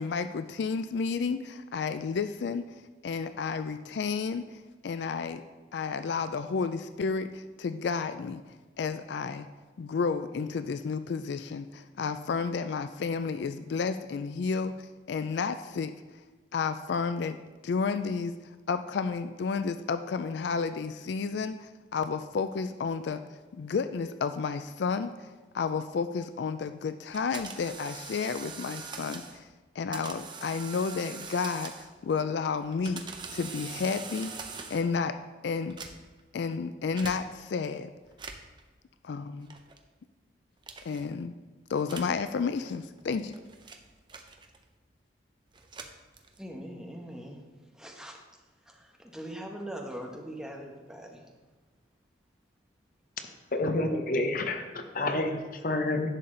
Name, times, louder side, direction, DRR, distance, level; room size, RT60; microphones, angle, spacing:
voice 1, 0.0-2.7 3.0-5.4 5.7-8.4 8.8-9.5 9.8-15.9 16.5-17.4 17.6-18.3 18.7-23.2 23.5-25.3 25.5-29.5 29.8-34.3 34.7-35.2 35.4-35.8 36.3-37.9 39.0-39.5 40.8-41.3 41.7-43.3, left 5 dB, 65° left, 10 dB, 0.3 m, -31 dB
sound 1, 27.1-29.4 29.9-32.0 32.6-35.0 35.6-36.2 37.0-37.2 38.1-38.6 39.5-39.8 40.6-41.0 41.8-42.2 43.0-44.7 45.5-46.5, right 5 dB, 25° right, 0.6 m, -43 dB
voice 2, 46.4-47.4 47.7-48.2 48.7-51.2, equal, 5° right, 0 dB, 1.0 m, -41 dB
voice 3, 53.5-56.1, left 2 dB, 45° left, 6 dB, 0.7 m, -29 dB
11.0 x 7.1 x 3.8 m, 1.3 s
head